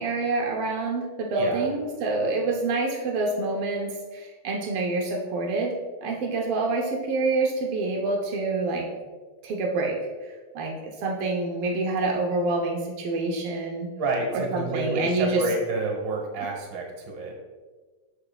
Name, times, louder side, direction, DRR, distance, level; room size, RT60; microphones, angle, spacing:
voice 1, 0.0-5.7 6.0-8.8 9.4-13.9 14.3-15.4, right 3 dB, 85° right, 0 dB, 1.2 m, -27 dB
voice 2, 1.4-1.7 14.0-17.3, right 2 dB, 50° right, 0 dB, 1.5 m, -29 dB
12.5 x 4.8 x 2.4 m, 1.4 s
omnidirectional pair, 3.7 m